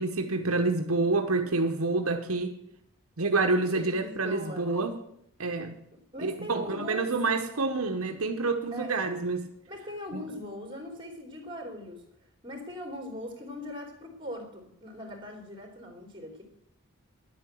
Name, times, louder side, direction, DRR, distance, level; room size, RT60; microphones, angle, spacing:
voice 1, 0.0-2.6 3.2-5.0 5.4-5.8 6.2-9.5 10.1-10.2, right 3 dB, 80° right, 1.0 m, -28 dB
voice 2, 3.7-4.9 6.1-7.1 8.7-9.0 9.7-12.0 12.4-16.4, left 1 dB, 25° right, 3.3 m, -40 dB
10.5 x 8.7 x 7.7 m
head